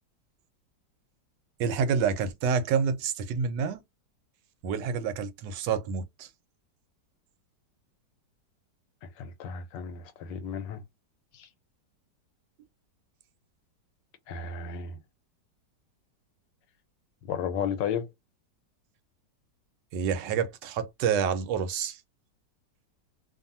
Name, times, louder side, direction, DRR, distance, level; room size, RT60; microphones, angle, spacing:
voice 1, 1.6-3.8 4.6-6.3 19.9-22.0, right 6 dB, 80° right, 1.3 m, -28 dB
voice 2, 9.0-10.8 11.3-11.5 14.3-15.0 17.2-18.1, left 7 dB, 85° left, 1.3 m, -33 dB
2.7 x 2.5 x 2.6 m
omnidirectional pair, 1.9 m